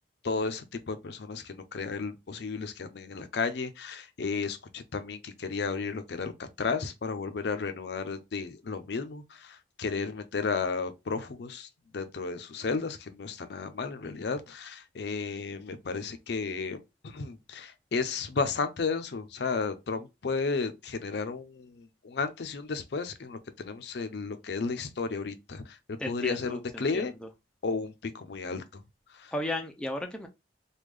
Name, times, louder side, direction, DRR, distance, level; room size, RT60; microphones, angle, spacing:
voice 1, 0.2-27.1 27.6-28.6 29.1-29.3, left 4 dB, 60° left, 0.5 m, -33 dB
voice 2, 26.0-26.6 29.3-30.3, left 1 dB, 5° left, 0.4 m, -33 dB
3.5 x 2.2 x 3.2 m
head